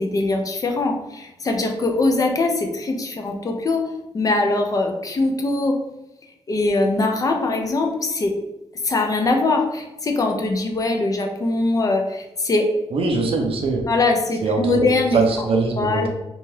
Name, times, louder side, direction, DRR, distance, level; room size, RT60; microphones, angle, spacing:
voice 1, 0.0-5.8 6.5-8.3 8.8-12.7 13.9-15.2 15.8-16.1, left 2 dB, 30° left, 3 dB, 0.4 m, -22 dB
voice 2, 12.9-13.8 14.4-16.1, right 3 dB, 55° right, 2 dB, 0.4 m, -22 dB
2.7 x 2.3 x 3.2 m, 0.97 s
wide cardioid pair, 130°, 11 cm